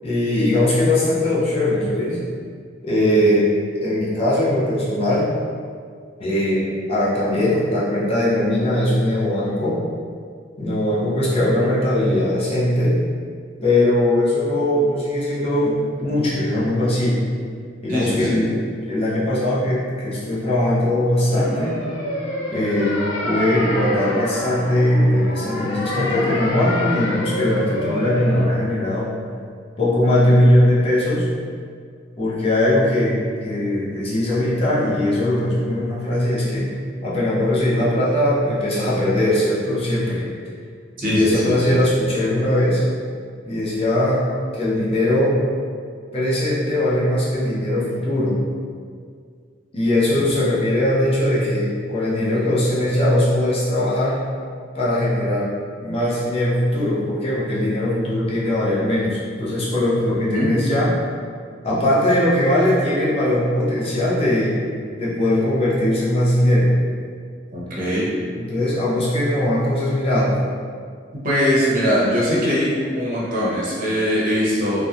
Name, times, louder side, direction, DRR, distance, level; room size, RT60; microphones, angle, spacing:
voice 1, 0.0-2.2 2.8-3.5 3.8-5.3 6.2-9.8 10.6-13.0 13.6-17.2 17.8-18.6 18.8-21.8 22.5-29.2 29.8-31.3 32.2-40.3 41.0-42.8 43.4-44.3 44.5-45.4 46.1-48.4 49.7-54.2 54.7-55.5 55.8-60.9 61.6-64.6 65.0-66.8 68.3-70.4, left 1 dB, 30° left, -8 dB, 0.5 m, -20 dB
voice 2, 3.0-3.3 17.9-18.4 41.0-41.8 50.1-50.2 60.1-60.6 67.5-68.1 71.1-74.8, equal, 50° right, -7 dB, 0.7 m, -21 dB
sound 1, 21.3-28.4, left 1 dB, 80° left, 0.5 m, -27 dB
2.8 x 2.1 x 2.4 m, 2.1 s
head